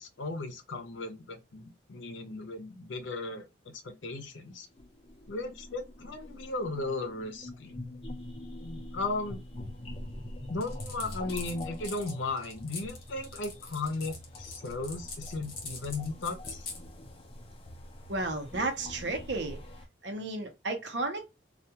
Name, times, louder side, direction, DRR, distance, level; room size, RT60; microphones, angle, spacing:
voice 1, 0.0-4.7 5.3-7.8 8.6-9.4 10.5-16.6, left 3 dB, 85° left, 0.6 m, -36 dB
sound 1, 4.5-19.9, left 1 dB, 30° left, 0.5 m, -44 dB
sound 2, 10.6-16.8, left 4 dB, 55° left, 0.9 m, -43 dB
voice 2, 18.1-19.6 20.0-21.2, right 2 dB, 70° right, 0.7 m, -33 dB
2.4 x 2.3 x 2.7 m
head